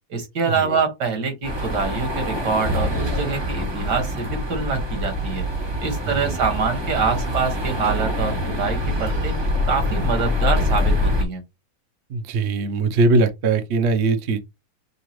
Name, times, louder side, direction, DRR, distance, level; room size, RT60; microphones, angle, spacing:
voice 1, 0.1-5.4 5.8-9.3 9.7-11.4, right 5 dB, 75° right, 2.2 m, -25 dB
sound 1, 1.4-11.2, left 1 dB, 25° right, 0.7 m, -24 dB
voice 2, 6.1-6.4 12.1-14.4, right 3 dB, 55° right, 0.7 m, -21 dB
6.6 x 2.4 x 3.0 m
omnidirectional pair, 1.8 m